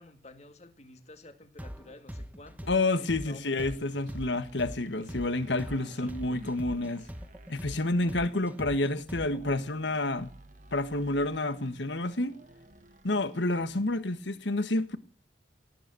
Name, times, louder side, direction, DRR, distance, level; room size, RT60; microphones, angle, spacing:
voice 1, 0.0-2.7 3.0-3.7 5.7-6.4, left 2 dB, 35° left, 2.0 m, -52 dB
sound 1, 1.6-9.5, equal, 10° right, 0.9 m, -42 dB
voice 2, 2.7-7.1 7.5-10.3 10.7-12.4 13.0-15.0, left 2 dB, 70° left, 1.4 m, -29 dB
sound 2, 3.3-14.1, right 1 dB, 40° right, 1.5 m, -53 dB
18.0 x 9.4 x 6.9 m
head